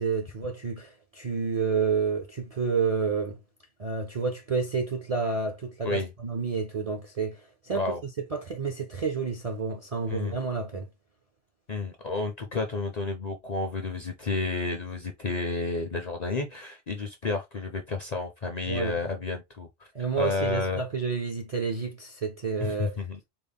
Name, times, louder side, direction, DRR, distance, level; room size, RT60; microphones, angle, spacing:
voice 1, 0.0-3.4 3.8-7.9 8.3-10.9 18.7-18.9 19.9-23.0, right 5 dB, 50° right, 0.4 m, -29 dB
voice 2, 7.7-8.0 10.1-10.4 11.7-19.9 20.2-20.8 22.6-23.2, left 3 dB, 50° left, 0.5 m, -31 dB
4.1 x 2.0 x 3.4 m
omnidirectional pair, 1.3 m